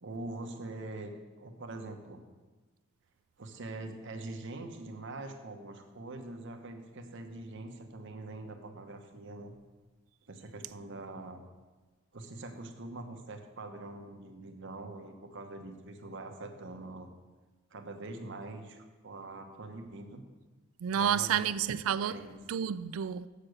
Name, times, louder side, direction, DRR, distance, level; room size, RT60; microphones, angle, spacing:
voice 1, 0.0-1.1 1.4-2.2 3.4-9.6 10.3-11.5 12.1-17.1 17.7-20.2 20.9-21.5 22.0-22.7, right 2 dB, 60° right, 1.0 m, -44 dB
voice 2, 20.8-22.2 22.5-23.3, right 8 dB, 80° right, 0.4 m, -30 dB
7.3 x 6.7 x 6.5 m
head